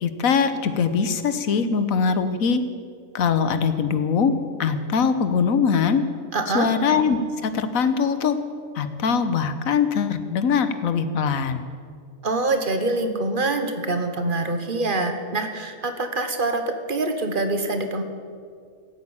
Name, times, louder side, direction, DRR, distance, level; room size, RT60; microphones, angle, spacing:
voice 1, 0.0-2.6 3.1-4.3 4.6-6.0 6.5-8.4 8.7-11.6, left 6 dB, 85° left, 11 dB, 1.4 m, -22 dB
voice 2, 6.3-6.7 12.2-16.6 16.9-18.0, right 2 dB, 40° right, 6 dB, 1.3 m, -25 dB
15.0 x 8.9 x 8.7 m, 2.2 s
omnidirectional pair, 1.4 m